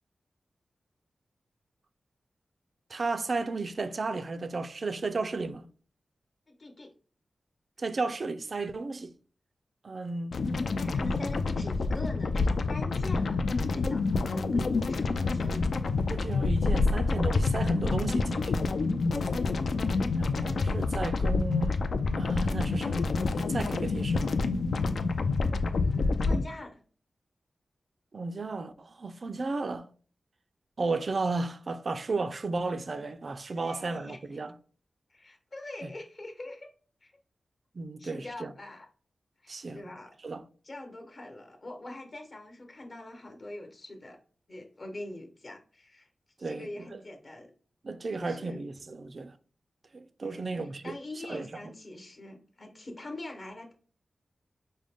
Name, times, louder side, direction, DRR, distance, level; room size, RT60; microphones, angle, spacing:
voice 1, 2.9-5.7 7.8-9.1 9.8-10.4 16.1-18.6 20.2-21.8 22.2-24.3 28.1-29.9 30.8-34.5 37.7-38.5 39.5-39.9 40.2-40.4 46.4-47.0 47.8-49.3 49.9-51.0 51.3-51.5, right 3 dB, 50° right, 0.3 m, -34 dB
voice 2, 6.5-6.9 10.5-13.4 13.7-15.7 25.5-26.8 33.5-34.2 35.1-36.7 37.0-37.1 38.0-38.9 39.4-40.1 40.6-44.2 44.5-46.1 46.4-47.5 48.2-48.7 50.2-53.7, left 1 dB, 45° left, 1.0 m, -43 dB
sound 1, 10.3-26.4, left 3 dB, 75° left, 0.4 m, -27 dB
5.1 x 2.1 x 3.5 m
wide cardioid pair, 110°, 0 cm